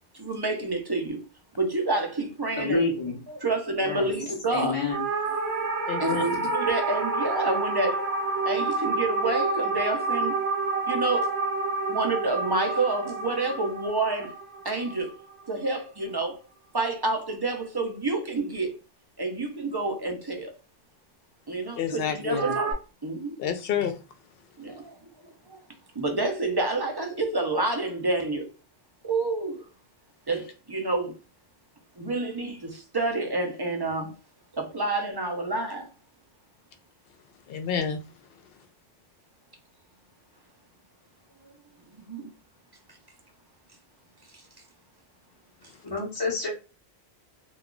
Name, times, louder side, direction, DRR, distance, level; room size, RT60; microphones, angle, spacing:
voice 1, 0.1-1.2 1.6-2.9 3.3-4.8 6.0-8.1 8.5-10.3 10.9-11.3 11.9-14.3 14.6-15.1 15.5-16.4 16.7-18.8 19.2-20.5 21.5-23.4 24.6-25.6 25.9-28.5 29.0-29.6 30.3-31.1 32.0-34.1 34.5-35.9 42.1-42.2, right 2 dB, 35° right, 0.4 m, -28 dB
voice 2, 2.6-3.2 3.8-4.1 4.5-5.0 22.2-22.5 45.8-46.5, left 3 dB, 30° left, 0.6 m, -28 dB
sound 1, 4.9-15.4 22.3-22.7, right 3 dB, 80° right, 0.9 m, -28 dB
voice 3, 5.9-6.2 21.7-22.4 23.4-24.0 37.5-38.0, left 8 dB, 65° left, 0.7 m, -29 dB
2.3 x 2.3 x 3.7 m
omnidirectional pair, 1.1 m